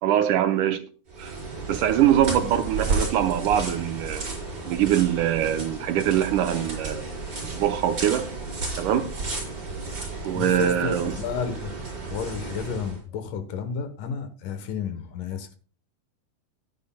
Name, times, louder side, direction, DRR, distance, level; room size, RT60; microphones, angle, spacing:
voice 1, 0.0-0.9 1.2-1.4 1.7-4.3 4.7-7.1 7.4-8.3 8.8-9.1 10.2-11.1, right 10 dB, 75° right, 2.1 m, -23 dB
sound 1, 1.1-13.0, right 3 dB, 30° right, 4.6 m, -33 dB
voice 2, 10.3-11.7 12.0-15.5, left 6 dB, 75° left, 2.6 m, -32 dB
14.0 x 9.6 x 2.2 m
omnidirectional pair, 3.9 m